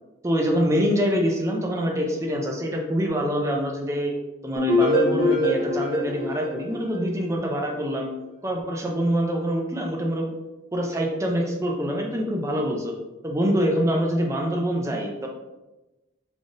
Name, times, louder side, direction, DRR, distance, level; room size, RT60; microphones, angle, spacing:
voice 1, 0.2-4.1 4.4-8.1 8.4-10.3 10.7-12.9 13.2-15.3, equal, 15° right, 1 dB, 0.4 m, -25 dB
sound 1, 4.6-7.5, left 1 dB, 65° left, 1.1 m, -24 dB
3.7 x 3.5 x 2.5 m, 1.1 s
head